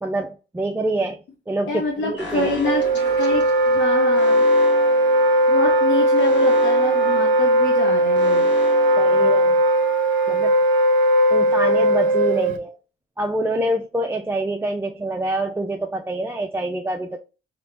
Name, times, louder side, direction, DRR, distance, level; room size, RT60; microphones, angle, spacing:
voice 1, 0.0-2.5 9.0-9.6 10.3-10.6 11.3-12.8 13.2-17.2, right 1 dB, 10° right, 0.4 m, -26 dB
voice 2, 1.7-4.5 5.5-8.5, left 3 dB, 85° left, 1.0 m, -26 dB
Alarm, 2.2-9.9, left 2 dB, 65° left, 1.4 m, -37 dB
Wind instrument woodwind instrument, 2.6-12.6, right 1 dB, 75° right, 0.5 m, -18 dB
4.0 x 2.9 x 3.4 m
cardioid pair, 90°, 20 cm